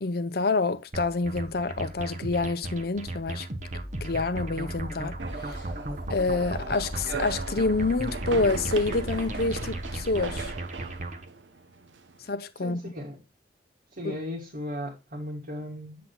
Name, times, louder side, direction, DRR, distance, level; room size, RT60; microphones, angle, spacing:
voice 1, 0.0-3.5 4.0-5.2 5.5-5.6 6.1-10.5 12.3-12.8 14.0-14.2, left 3 dB, 55° left, 0.7 m, -27 dB
sound 1, 0.9-11.2, right 2 dB, 45° right, 1.0 m, -37 dB
sound 2, 3.7-10.6, equal, 5° left, 1.7 m, -39 dB
sound 3, 5.2-12.3, right 4 dB, 85° right, 0.8 m, -39 dB
voice 2, 12.6-13.2 13.9-16.1, left 1 dB, 60° right, 1.8 m, -36 dB
8.0 x 7.6 x 2.2 m
head